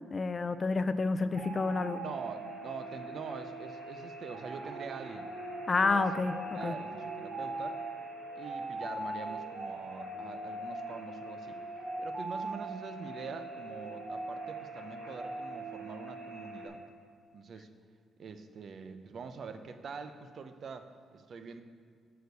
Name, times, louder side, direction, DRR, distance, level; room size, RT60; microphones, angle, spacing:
voice 1, 0.1-2.0 5.7-6.8, left 3 dB, 35° left, 12 dB, 0.4 m, -29 dB
sound 1, 1.3-16.7, right 2 dB, 80° right, 2.6 m, -41 dB
voice 2, 2.0-5.3 5.8-6.1 6.5-7.8 8.4-11.6 12.0-16.8 17.3-17.7 18.2-21.6, right 5 dB, 55° right, 9 dB, 0.6 m, -44 dB
6.7 x 6.5 x 6.7 m, 2.1 s
cardioid pair, 90°, 0 cm